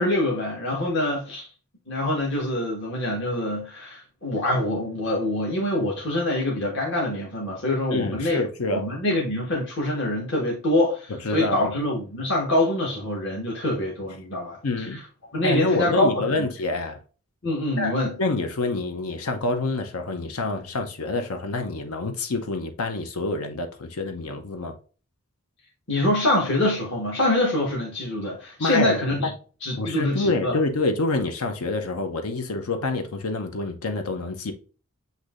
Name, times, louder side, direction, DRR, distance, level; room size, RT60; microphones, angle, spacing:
voice 1, 0.0-1.5 1.9-8.4 8.7-14.6 14.9-15.0 15.3-16.5 17.4-18.2 25.9-29.3 29.6-30.6, left 1 dB, 55° left, 1.3 m, -25 dB
voice 2, 7.9-8.8 11.2-11.7 14.6-15.0 15.4-17.0 17.8-24.7 28.6-29.3 29.8-34.5, left 2 dB, 85° left, 0.7 m, -27 dB
8.0 x 2.7 x 2.5 m
head